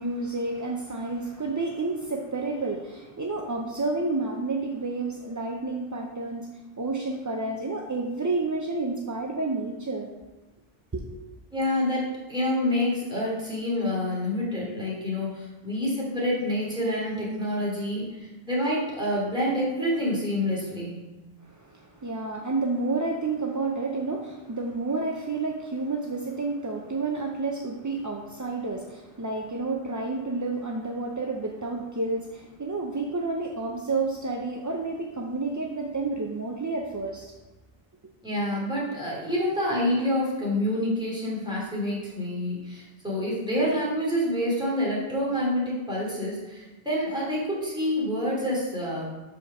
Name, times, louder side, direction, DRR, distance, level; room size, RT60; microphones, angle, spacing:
voice 1, 0.0-6.5 6.8-10.1 10.9-11.1 21.4-37.3, right 3 dB, 30° right, 0 dB, 0.4 m, -30 dB
voice 2, 11.5-21.0 38.2-49.0, left 1 dB, 5° right, -7 dB, 2.6 m, -27 dB
5.1 x 5.0 x 6.0 m, 1.1 s
omnidirectional pair, 1.1 m